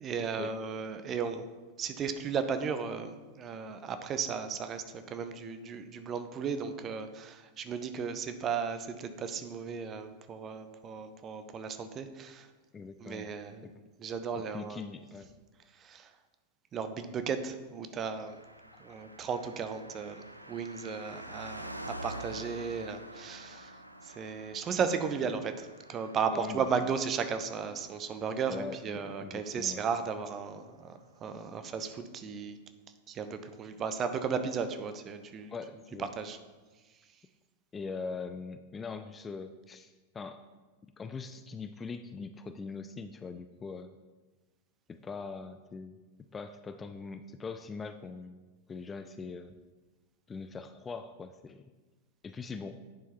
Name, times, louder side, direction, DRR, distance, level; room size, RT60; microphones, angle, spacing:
voice 1, 0.0-1.5 1.8-12.5 13.0-13.7 14.0-14.8 15.8-16.1 16.7-18.4 18.8-23.8 24.0-32.6 33.1-35.5 36.2-36.4, right 6 dB, 30° right, 9 dB, 0.6 m, -35 dB
voice 2, 12.7-13.3 13.6-13.7 14.5-15.3 18.7-18.8 26.3-26.9 28.5-29.9 35.5-36.1 37.7-40.4 41.0-43.9 44.9-46.0 46.3-48.4 48.7-49.6 50.3-51.7 52.2-52.8, left 4 dB, 20° left, 9 dB, 0.3 m, -42 dB
Car passing by, 18.1-30.0 30.2-30.3, right 1 dB, 85° right, 0.3 m, -47 dB
10.0 x 4.5 x 3.0 m, 1.3 s
figure-of-eight pair, 90°, 0 cm